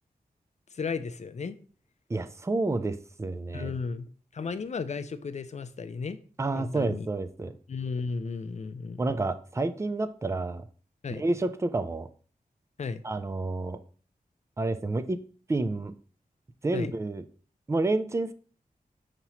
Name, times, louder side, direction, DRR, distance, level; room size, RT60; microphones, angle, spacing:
voice 1, 0.7-1.6 3.5-4.1 4.3-6.2 6.6-7.1 7.7-9.0 11.0-11.2 12.8-13.0 16.7-16.9, left 5 dB, 50° left, 11 dB, 0.4 m, -34 dB
voice 2, 2.1-3.7 6.4-7.5 9.0-10.6 11.1-12.1 13.0-13.8 14.6-15.2 15.5-15.9 16.6-17.2 17.7-18.3, right 2 dB, 20° right, 11 dB, 0.4 m, -29 dB
5.4 x 2.9 x 2.9 m, 0.42 s
cardioid pair, 50°, 15 cm